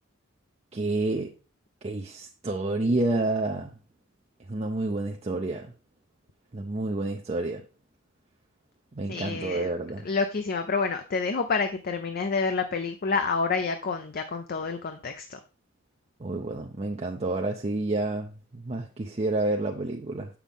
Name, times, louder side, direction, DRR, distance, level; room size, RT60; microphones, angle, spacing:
voice 1, 0.7-1.3 1.8-3.7 4.5-5.7 6.5-7.6 8.9-10.1 16.2-20.3, right 2 dB, 30° right, 2 dB, 0.5 m, -29 dB
voice 2, 9.1-9.7 10.0-15.4, left 4 dB, 45° left, 7 dB, 0.5 m, -28 dB
7.2 x 5.8 x 3.5 m, 0.33 s
head